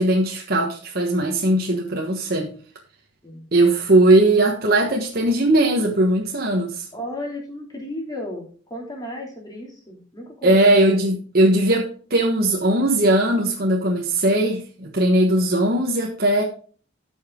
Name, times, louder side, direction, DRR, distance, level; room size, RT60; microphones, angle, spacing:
voice 1, 0.0-2.5 3.5-6.8 10.4-16.4, right 1 dB, 50° right, 1.3 m, -19 dB
voice 2, 6.9-10.6, left 1 dB, 20° left, 2.9 m, -34 dB
14.0 x 5.6 x 3.7 m
head